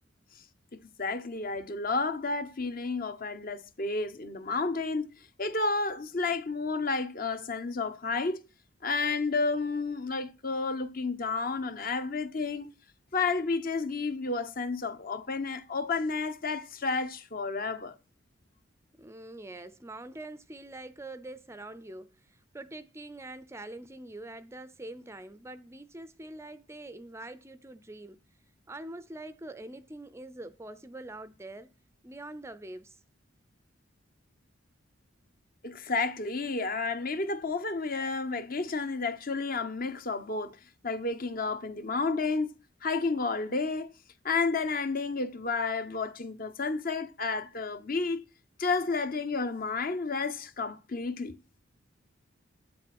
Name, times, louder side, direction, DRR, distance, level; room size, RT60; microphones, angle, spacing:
voice 1, 0.7-5.1 5.4-8.5 8.8-12.7 13.1-17.9 35.6-40.6 40.8-42.6 42.8-43.9 44.2-48.2 48.6-51.4, left 3 dB, 45° left, 1.1 m, -31 dB
voice 2, 19.0-28.2 28.7-31.7 32.0-33.0, right 2 dB, 15° right, 0.6 m, -44 dB
9.2 x 7.6 x 6.1 m
head